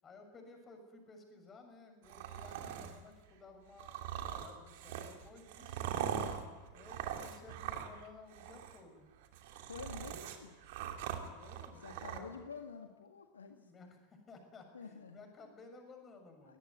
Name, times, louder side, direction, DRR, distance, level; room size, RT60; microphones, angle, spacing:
voice 1, 0.0-6.2 6.7-9.1 11.2-12.4 13.5-16.6, left 3 dB, 20° left, 5 dB, 6.5 m, -56 dB
sound 1, 2.0-3.0 3.8-8.1 8.3-8.8 9.2-12.2, right 9 dB, 50° right, 2.8 m, -41 dB
voice 2, 9.6-10.6 11.8-13.7 14.7-15.3 16.5-16.6, left 5 dB, 70° left, 5 dB, 1.8 m, -49 dB
22.0 x 19.5 x 9.8 m, 1.2 s
figure-of-eight pair, 90°, 0 cm